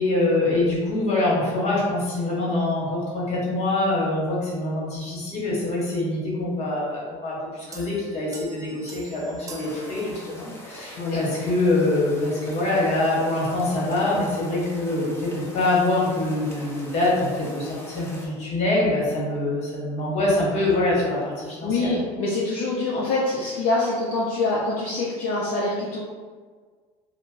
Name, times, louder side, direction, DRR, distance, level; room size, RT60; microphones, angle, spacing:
voice 1, 0.0-21.9, left 2 dB, 45° left, -5 dB, 1.4 m, -24 dB
sound 1, 7.7-10.7, right 2 dB, 20° right, 0.5 m, -41 dB
sound 2, 9.6-18.3, equal, 15° left, 0.8 m, -42 dB
voice 2, 21.6-26.0, left 2 dB, 70° left, -6 dB, 0.6 m, -25 dB
2.5 x 2.2 x 3.7 m, 1.5 s
supercardioid pair, 90°, 15 cm